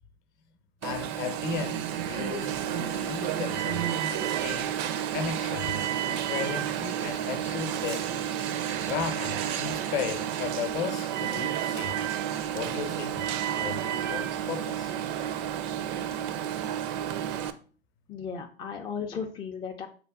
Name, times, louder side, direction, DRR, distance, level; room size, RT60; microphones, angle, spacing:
voice 1, 0.8-4.7 5.1-8.1 8.8-12.0 12.5-13.3 13.6-15.0, left 7 dB, 40° left, 0.7 m, -36 dB
Alarm, 0.8-17.5, right 10 dB, 45° right, 0.5 m, -31 dB
voice 2, 8.4-8.8 9.7-9.9 18.1-19.9, left 6 dB, 15° left, 0.3 m, -36 dB
5.8 x 2.1 x 3.4 m
hypercardioid pair, 100°, 30 cm